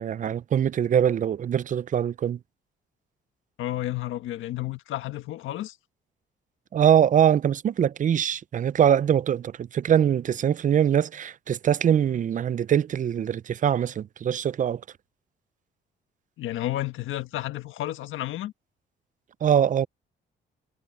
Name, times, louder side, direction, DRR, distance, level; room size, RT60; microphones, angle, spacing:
voice 1, 0.0-2.4 6.7-14.8 19.4-19.9, right 9 dB, 40° right, 0.5 m, -23 dB
voice 2, 3.6-5.7 16.4-18.5, left 14 dB, 85° left, 1.5 m, -31 dB
cardioid pair, 90°, 20 cm